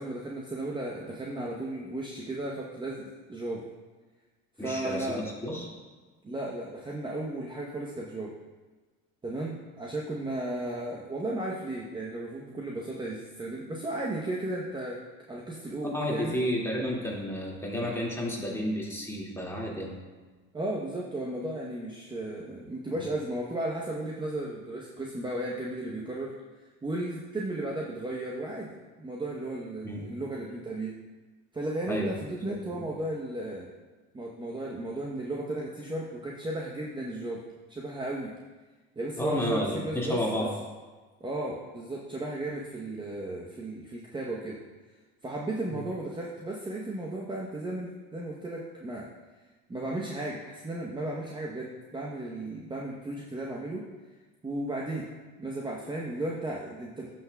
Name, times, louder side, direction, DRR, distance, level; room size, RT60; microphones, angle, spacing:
voice 1, 0.0-3.7 4.6-5.4 6.2-8.3 9.2-15.0 15.3-16.4 20.5-26.3 26.8-31.0 31.5-33.7 34.1-38.3 39.0-40.2 41.2-44.6 45.2-49.1 49.7-53.9 54.4-55.1 55.4-57.1, right 1 dB, 15° right, -3 dB, 0.9 m, -35 dB
voice 2, 4.6-5.7 15.9-19.9 22.9-23.0 29.8-30.0 31.9-32.1 32.7-32.9 39.2-40.5 45.7-45.8, equal, 10° left, -3 dB, 2.1 m, -31 dB
11.5 x 6.0 x 2.3 m, 1.3 s
supercardioid pair, 95°, 31 cm